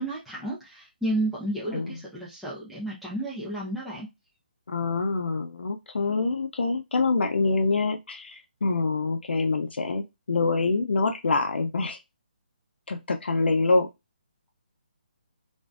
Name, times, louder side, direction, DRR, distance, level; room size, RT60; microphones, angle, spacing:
voice 1, 0.0-4.1, right 1 dB, ahead, 0.4 m, -32 dB
voice 2, 4.7-12.0 12.9-13.9, left 3 dB, 85° left, 0.5 m, -25 dB
2.5 x 2.0 x 2.4 m
hypercardioid pair, 165°, 6 cm